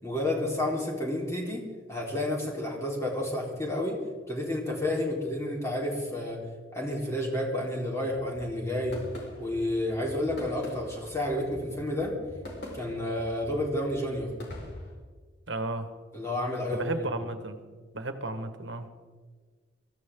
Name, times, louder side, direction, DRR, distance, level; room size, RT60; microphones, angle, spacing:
voice 1, 0.0-4.0 4.3-6.4 6.7-9.0 9.4-12.1 12.7-14.3 16.1-17.1, left 1 dB, 15° left, -2 dB, 3.9 m, -30 dB
sound 1, 8.1-15.0, left 1 dB, 60° left, 4.7 m, -44 dB
voice 2, 15.5-16.0 16.7-17.6 17.9-18.9, right 2 dB, 70° right, 8 dB, 1.5 m, -33 dB
23.0 x 14.5 x 3.8 m, 1.5 s
head